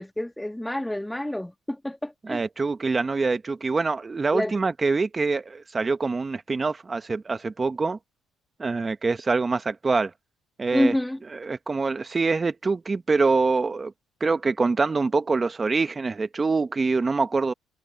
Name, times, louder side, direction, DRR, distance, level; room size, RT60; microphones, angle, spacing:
voice 1, 0.0-2.4 4.3-4.5 10.7-11.2, left 1 dB, 5° left, 1.8 m, -27 dB
voice 2, 2.2-8.0 8.6-10.1 10.6-10.9 11.3-13.9 14.2-17.5, right 4 dB, 25° right, 1.1 m, -25 dB
cardioid pair, 95°, 0 cm